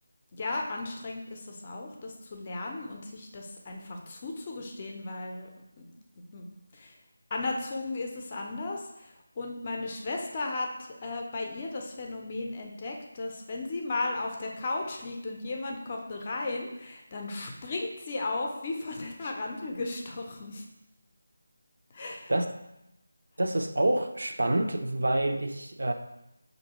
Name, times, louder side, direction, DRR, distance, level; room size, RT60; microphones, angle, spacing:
voice 1, 0.3-5.5 5.8-5.9 6.3-6.5 6.7-6.9 7.3-20.6 21.9-22.3, left 2 dB, 25° left, 1 dB, 0.5 m, -35 dB
voice 2, 23.4-25.9, right 1 dB, 75° right, 7 dB, 0.4 m, -27 dB
5.3 x 2.6 x 2.9 m, 0.90 s
figure-of-eight pair, 170°, 0 cm